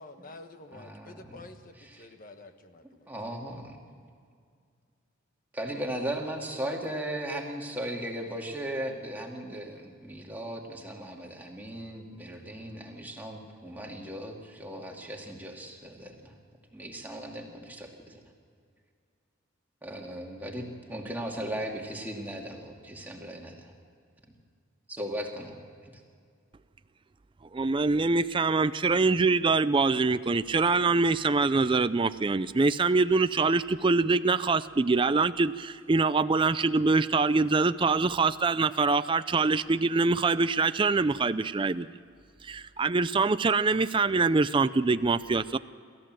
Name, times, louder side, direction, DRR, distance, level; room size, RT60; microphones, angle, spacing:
voice 1, 0.0-3.1, left 2 dB, 40° left, 7 dB, 1.5 m, -49 dB
voice 2, 0.7-1.4 2.0-2.1 3.1-3.8 5.5-16.4 16.7-18.2 19.8-23.7 24.9-26.0, right 1 dB, 10° right, 0 dB, 2.4 m, -37 dB
voice 3, 27.5-41.9 42.4-45.6, right 3 dB, 25° right, 13 dB, 0.4 m, -24 dB
27.5 x 14.0 x 7.6 m, 2.2 s
head